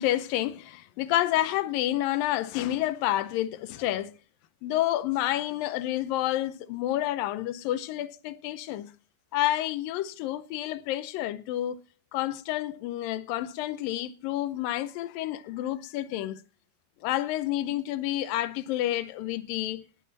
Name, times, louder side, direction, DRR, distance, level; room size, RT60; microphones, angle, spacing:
voice 1, 0.0-4.1 4.6-8.9 9.3-11.8 12.1-16.4 17.0-19.8, left 14 dB, 90° left, 2.5 m, -29 dB
20.0 x 9.1 x 4.1 m
omnidirectional pair, 3.9 m